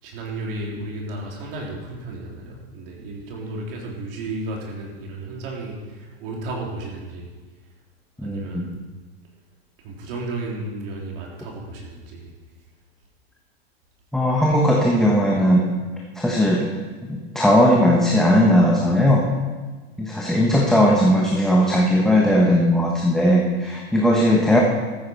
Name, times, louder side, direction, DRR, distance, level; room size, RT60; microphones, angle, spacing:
voice 1, 0.0-7.3 8.2-8.8 9.8-12.3, right 2 dB, 60° right, -2 dB, 3.6 m, -33 dB
voice 2, 8.2-8.6 14.1-15.6 16.1-16.7 17.0-19.2 20.0-24.6, equal, ahead, -2 dB, 1.2 m, -18 dB
13.5 x 9.5 x 4.7 m, 1.4 s
hypercardioid pair, 120°, 31 cm